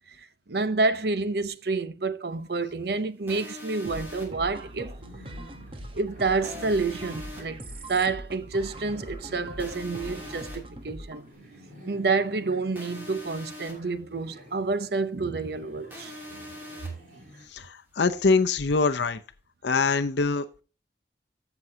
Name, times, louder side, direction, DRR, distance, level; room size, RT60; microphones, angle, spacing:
voice 1, 0.5-5.0 5.9-7.6 7.9-11.3 11.8-16.1 17.2-17.3, right 3 dB, 65° right, 0.7 m, -28 dB
sound 1, 3.3-4.3 6.4-7.4 9.6-10.6 12.7-13.7 15.9-16.9, left 1 dB, 10° right, 2.8 m, -42 dB
sound 2, 3.8-11.3, right 1 dB, 30° right, 1.1 m, -41 dB
sound 3, 4.5-17.5, equal, 45° right, 4.0 m, -51 dB
voice 2, 17.5-19.2 19.6-20.6, left 4 dB, 80° left, 0.6 m, -24 dB
15.5 x 6.0 x 2.8 m
head